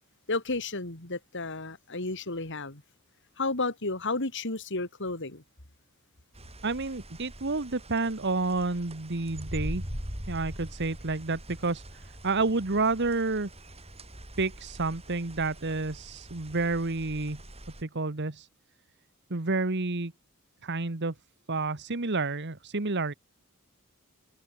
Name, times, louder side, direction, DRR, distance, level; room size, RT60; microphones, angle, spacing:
voice 1, 0.3-2.8 3.4-5.4, left 3 dB, 60° left, 3.8 m, -32 dB
sound 1, 6.3-17.8, equal, 30° right, 7.6 m, -43 dB
voice 2, 6.6-9.8 10.3-13.5 14.4-17.4 17.8-18.5 19.3-20.1 20.6-21.1 21.5-23.1, right 3 dB, 55° right, 1.5 m, -30 dB
head